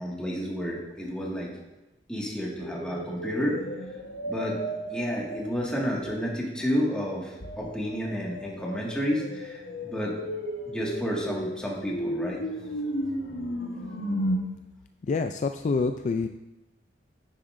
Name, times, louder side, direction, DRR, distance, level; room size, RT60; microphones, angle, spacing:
voice 1, 0.0-1.5 2.1-3.6 4.2-4.6 4.9-10.1 10.7-12.4, equal, 5° left, -4 dB, 1.8 m, -31 dB
sound 1, 2.6-6.2 7.4-14.4, equal, 75° left, 1.2 m, -34 dB
voice 2, 15.1-16.3, left 4 dB, 40° left, 7 dB, 0.3 m, -26 dB
9.8 x 9.6 x 2.6 m, 1.0 s
head